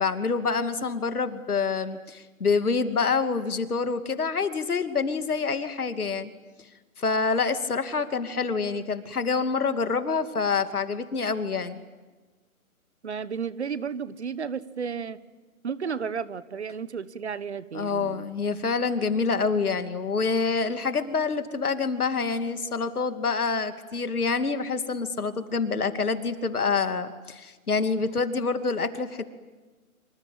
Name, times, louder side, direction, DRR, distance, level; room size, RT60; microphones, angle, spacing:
voice 1, 0.0-6.3 7.0-11.8 17.7-29.2, left 4 dB, 80° left, 9 dB, 2.7 m, -27 dB
voice 2, 13.0-15.2 15.6-18.3, right 6 dB, 50° right, 17 dB, 1.2 m, -33 dB
26.5 x 25.5 x 8.8 m, 1.3 s
hypercardioid pair, 170°, 44 cm